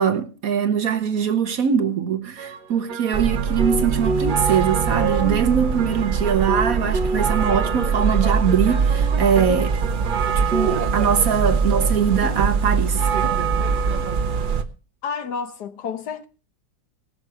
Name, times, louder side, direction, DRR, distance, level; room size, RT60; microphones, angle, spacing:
voice 1, 0.0-9.8 10.5-13.0, right 7 dB, 60° right, 1.2 m, -22 dB
sound 1, 2.4-10.9, right 2 dB, 75° right, 1.6 m, -31 dB
sound 2, 3.1-14.6, right 5 dB, 35° right, 0.9 m, -22 dB
sound 3, 4.9-6.4 7.0-8.3 8.7-10.0 10.3-10.7 11.5-14.4, right 3 dB, 10° left, 4.9 m, -35 dB
voice 2, 15.0-16.3, left 6 dB, 70° left, 1.7 m, -30 dB
18.5 x 6.6 x 4.7 m
omnidirectional pair, 1.9 m